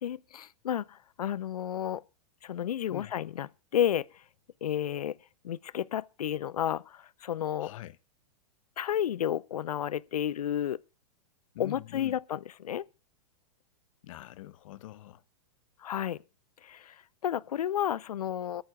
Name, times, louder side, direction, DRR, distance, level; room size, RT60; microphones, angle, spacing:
voice 1, 0.0-2.0 2.4-4.1 4.6-5.2 5.4-7.7 8.8-10.8 11.6-12.9 15.8-16.2 16.6-17.0 17.2-18.6, left 10 dB, 85° left, 0.6 m, -31 dB
voice 2, 7.6-8.0 11.5-12.2 14.0-15.2, left 14 dB, 60° left, 0.9 m, -44 dB
23.0 x 13.5 x 2.3 m
hypercardioid pair, 120°, 19 cm